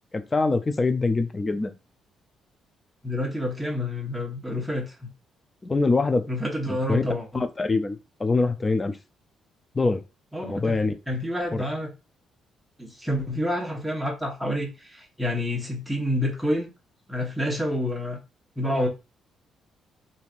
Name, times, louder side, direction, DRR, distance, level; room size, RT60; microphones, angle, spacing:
voice 1, 0.1-1.7 5.6-6.3 6.9-7.0 7.3-9.0 9.7-10.0 10.5-10.9 11.5-11.6, left 3 dB, 25° left, 0.4 m, -24 dB
voice 2, 3.0-5.1 6.3-7.4 10.3-11.9 12.8-16.7 17.1-18.2 18.6-18.9, left 1 dB, 5° right, 1.2 m, -28 dB
3.1 x 2.7 x 2.5 m
cardioid pair, 90°, 0 cm